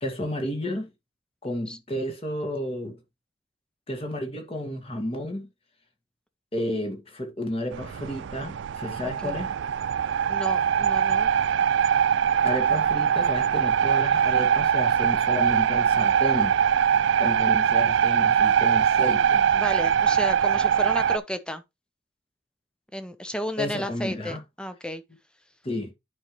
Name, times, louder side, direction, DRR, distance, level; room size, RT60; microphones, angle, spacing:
voice 1, 0.0-0.9 1.4-3.0 3.9-5.5 6.5-9.5 12.4-16.8 17.2-19.5 23.6-24.4 25.6-25.9, left 1 dB, 30° left, 1.9 m, -32 dB
sound 1, 7.7-21.2, right 8 dB, 65° right, 0.3 m, -22 dB
voice 2, 9.0-9.3 10.3-11.3 19.5-21.6 22.9-25.0, equal, 5° left, 0.8 m, -33 dB
10.5 x 5.3 x 3.1 m
head